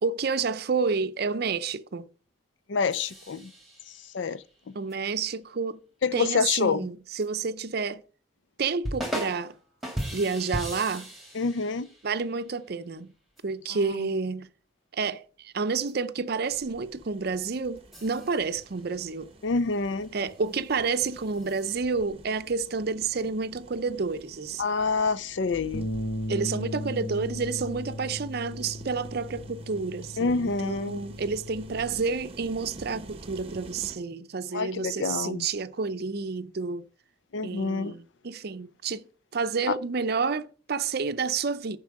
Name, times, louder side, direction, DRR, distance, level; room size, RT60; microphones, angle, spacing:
voice 1, 0.0-2.1 4.7-5.8 6.1-8.0 8.6-9.6 10.1-11.1 12.0-13.1 13.4-14.5 14.9-19.3 20.1-24.6 26.3-36.8 37.4-39.1 39.3-41.8, right 4 dB, 50° right, 0.5 m, -30 dB
voice 2, 2.7-3.5 4.1-4.4 6.0-6.9 11.3-11.9 13.7-14.1 19.4-20.1 24.6-25.9 30.2-31.0 34.5-35.4 37.3-37.9 39.7-39.8, left 4 dB, 65° left, 0.5 m, -27 dB
sound 1, 2.9-4.3 4.9-5.0 7.2-7.3 8.8-9.6 9.8-12.3 13.4-13.5 15.9-16.0 17.8-18.7 19.7-21.7, equal, ahead, 2.5 m, -38 dB
sound 2, 16.5-34.0, right 2 dB, 30° right, 0.9 m, -49 dB
Bass guitar, 25.7-32.0, left 1 dB, 85° left, 1.3 m, -36 dB
7.1 x 5.4 x 7.3 m
head